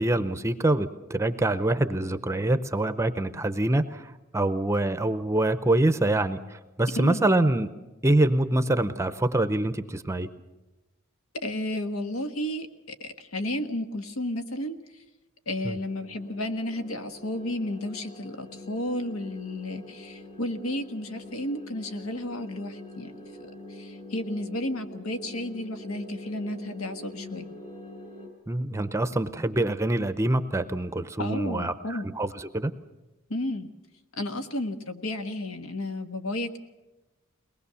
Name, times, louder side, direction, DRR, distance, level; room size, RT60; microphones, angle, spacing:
voice 1, 0.0-7.7 8.0-10.3 15.6-15.8 28.5-32.7, right 1 dB, 15° right, 11 dB, 0.7 m, -25 dB
voice 2, 11.4-14.8 15.5-23.1 23.7-27.5 31.2-32.1 33.3-33.7 34.2-36.6, left 1 dB, 80° left, 8 dB, 1.4 m, -32 dB
sound 1, 15.6-28.3, left 1 dB, 35° left, 3.9 m, -45 dB
22.5 x 19.5 x 6.9 m, 1.1 s
head